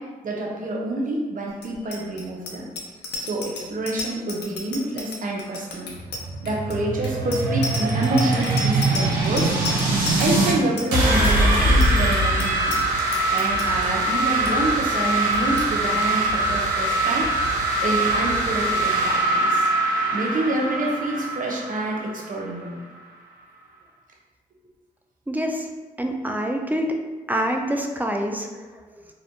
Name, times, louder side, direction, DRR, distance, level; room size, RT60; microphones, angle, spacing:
voice 1, 0.0-2.7 3.1-5.9 6.4-9.6 10.2-12.8 13.3-17.4 17.8-19.7 20.1-22.8, right 1 dB, 50° right, -1 dB, 0.6 m, -27 dB
Bicycle bell, 1.6-13.9 14.2-14.5 14.8-15.1 15.3-15.7, left 2 dB, 70° left, 0.5 m, -33 dB
sound 1, 5.9-10.5 10.9-22.5, right 2 dB, 85° right, 0.7 m, -22 dB
voice 2, 25.3-25.7 26.0-26.9 27.3-28.5, equal, 10° right, 2 dB, 0.4 m, -25 dB
2.4 x 2.2 x 2.7 m, 1.3 s
hypercardioid pair, 40°, 18 cm